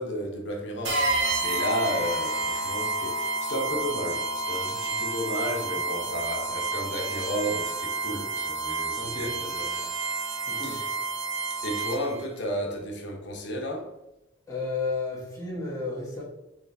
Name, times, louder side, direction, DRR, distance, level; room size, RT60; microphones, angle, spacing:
voice 1, 0.0-9.9 10.6-10.9 11.6-13.9, equal, 75° left, 0.9 m, -33 dB
sound 1, 0.8-12.2, right 2 dB, 80° right, 1.0 m, -30 dB
voice 2, 9.0-9.4 10.5-10.8 14.5-16.2, left 3 dB, 15° left, 1.3 m, -32 dB
6.1 x 3.1 x 2.6 m
head